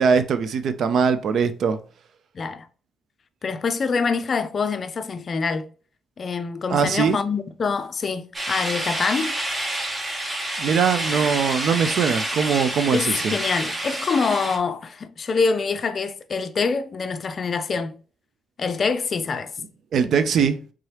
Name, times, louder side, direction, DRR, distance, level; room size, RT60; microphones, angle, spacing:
voice 1, 0.0-1.8 6.7-7.2 10.6-13.4 19.9-20.6, right 6 dB, 65° right, 0.5 m, -21 dB
voice 2, 2.3-2.7 3.4-5.7 6.2-9.4 12.9-18.0 18.6-19.5, left 5 dB, 45° left, 0.4 m, -25 dB
sound 1, 8.3-14.6, right 1 dB, 20° right, 0.9 m, -28 dB
3.6 x 2.8 x 3.2 m
cardioid pair, 90°, 0 cm